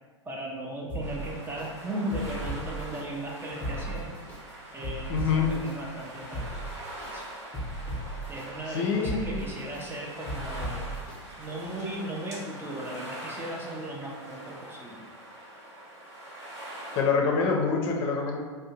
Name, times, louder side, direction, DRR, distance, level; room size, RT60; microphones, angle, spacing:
voice 1, 0.2-4.2 4.7-6.6 7.1-7.2 8.3-10.9 11.4-15.0, right 1 dB, 15° right, -2 dB, 0.5 m, -37 dB
sound 1, 0.9-1.7 2.1-3.0 3.5-4.4 4.8-5.7 6.2-7.1 7.5-8.4 8.9-9.8 10.3-11.2 11.6-11.7, right 1 dB, 10° left, 0.8 m, -36 dB
sound 2, 1.0-17.0, right 1 dB, 65° right, 1.2 m, -43 dB
voice 2, 5.1-5.5 8.7-9.4 16.9-18.4, left 5 dB, 40° left, 0 dB, 0.6 m, -26 dB
2.6 x 2.1 x 3.9 m, 1.4 s
hypercardioid pair, 100°, 16 cm